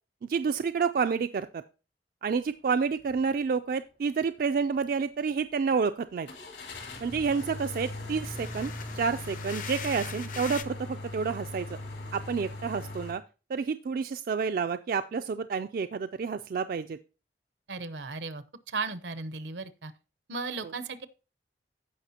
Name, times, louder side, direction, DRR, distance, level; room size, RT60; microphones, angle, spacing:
voice 1, 0.2-1.6 2.2-6.3 7.0-11.8 12.1-13.2 13.5-17.0 20.6-20.7, right 5 dB, 55° right, 9 dB, 0.3 m, -29 dB
sound 1, 3.0-3.2 3.7-3.8 6.3-13.1, left 2 dB, 75° left, 2.4 m, -40 dB
sound 2, 6.9-7.0 7.3-10.6, left 7 dB, 50° left, 0.6 m, -42 dB
voice 2, 17.7-18.4 18.7-19.9 20.3-21.1, right 4 dB, 85° right, 12 dB, 0.8 m, -35 dB
15.0 x 5.7 x 2.8 m, 0.33 s
head